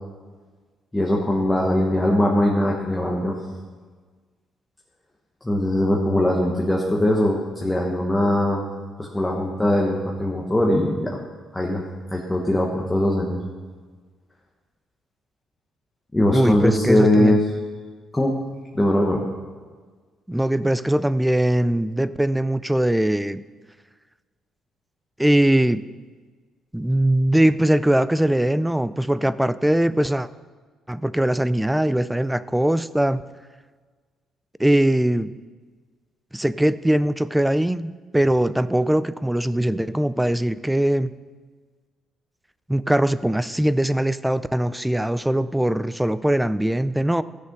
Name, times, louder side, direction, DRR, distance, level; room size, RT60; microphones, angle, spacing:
voice 1, 0.9-3.3 5.4-8.6 9.0-11.2 11.5-11.8 12.1-13.4 16.1-17.5 18.1-18.3 18.7-19.2, left 1 dB, 10° left, -1 dB, 1.3 m, -21 dB
voice 2, 16.3-17.4 20.3-23.4 25.2-25.8 26.7-30.3 30.9-33.2 34.6-35.3 36.3-41.1 42.7-47.2, right 1 dB, 5° right, 16 dB, 0.3 m, -21 dB
14.5 x 6.4 x 5.4 m, 1.5 s
cardioid pair, 115°, 0 cm